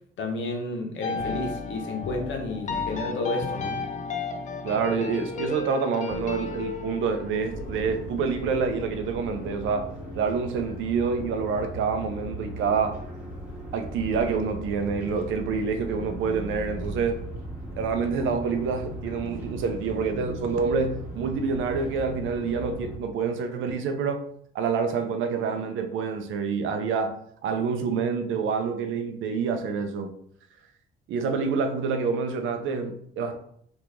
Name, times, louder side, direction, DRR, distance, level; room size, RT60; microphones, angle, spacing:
voice 1, 0.2-3.8, left 2 dB, 70° left, 0.9 m, -31 dB
sound 1, 1.0-10.2, left 4 dB, 40° left, 0.5 m, -34 dB
voice 2, 4.6-9.9 10.2-13.0 13.7-17.2 17.8-24.2 24.5-27.2 27.4-30.1 31.1-33.4, right 5 dB, 85° right, 0.5 m, -27 dB
sound 2, 7.5-23.0, right 1 dB, 5° right, 1.1 m, -38 dB
3.0 x 2.4 x 3.5 m
cardioid pair, 90°, 20 cm